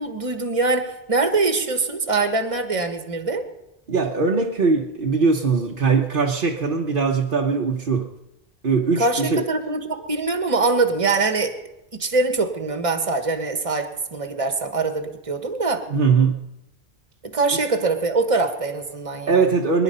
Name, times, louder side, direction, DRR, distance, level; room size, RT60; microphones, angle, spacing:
voice 1, 0.0-3.4 9.0-11.5 11.9-15.8 17.3-19.5, right 3 dB, 30° right, 6 dB, 1.5 m, -23 dB
voice 2, 3.9-8.1 8.6-9.4 15.9-16.4 19.3-19.8, right 4 dB, 55° right, -1 dB, 1.2 m, -20 dB
23.5 x 10.5 x 5.5 m, 0.93 s
omnidirectional pair, 1.1 m